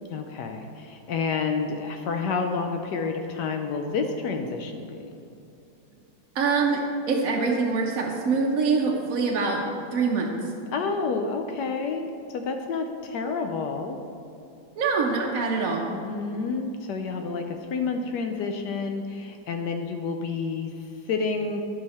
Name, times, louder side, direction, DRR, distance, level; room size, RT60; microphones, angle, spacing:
voice 1, 0.1-5.0 10.7-12.1 12.3-14.0 15.9-21.6, left 4 dB, 75° left, 5 dB, 1.0 m, -29 dB
voice 2, 6.3-6.8 7.1-9.6 9.9-10.3 14.8-15.8, right 4 dB, 60° right, -2 dB, 0.9 m, -24 dB
10.5 x 5.7 x 4.2 m, 2.5 s
omnidirectional pair, 2.2 m